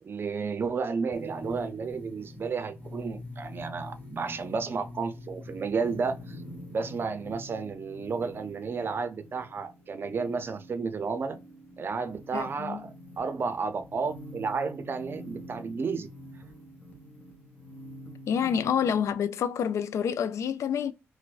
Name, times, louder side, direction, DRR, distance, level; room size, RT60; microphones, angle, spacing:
voice 1, 0.0-6.4 6.7-11.4 11.8-16.1, right 5 dB, 45° right, 0.5 m, -32 dB
sound 1, 1.1-19.1, left 1 dB, 35° left, 1.0 m, -45 dB
voice 2, 12.3-12.8 18.3-20.9, left 7 dB, 75° left, 0.3 m, -28 dB
4.5 x 2.1 x 2.4 m
cardioid pair, 80°, 5 cm